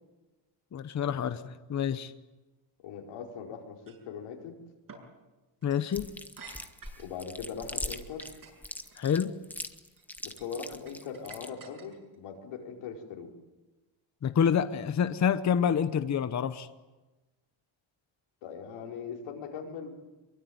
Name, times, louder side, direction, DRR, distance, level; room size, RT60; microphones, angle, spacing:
voice 1, 0.7-2.1 5.6-6.1 8.9-9.3 14.2-16.7, left 8 dB, 35° left, 11 dB, 1.0 m, -27 dB
voice 2, 2.8-4.6 7.0-8.3 10.2-13.3 18.4-19.9, left 6 dB, 85° left, 1 dB, 4.9 m, -40 dB
sound 1, 3.9-4.1 4.9-5.1 5.6-5.9 6.4-7.1 7.7-9.0 9.7-10.0 10.4-12.1, right 4 dB, 40° right, 7.5 m, -51 dB
Chewing mastication, 5.9-11.5, left 1 dB, 5° left, 1.3 m, -40 dB
25.0 x 23.0 x 9.4 m, 1.1 s
cardioid pair, 140°, 49 cm